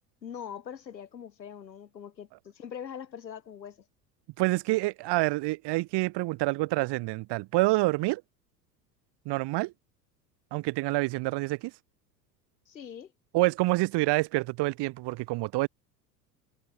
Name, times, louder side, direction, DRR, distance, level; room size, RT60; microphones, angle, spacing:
voice 1, 0.2-3.8 12.7-13.1, left 8 dB, 85° left, 6.9 m, -42 dB
voice 2, 4.4-8.2 9.2-9.7 10.5-11.7 13.3-15.7, right 21 dB, 55° right, 4.5 m, -27 dB
hypercardioid pair, 80°, 50 cm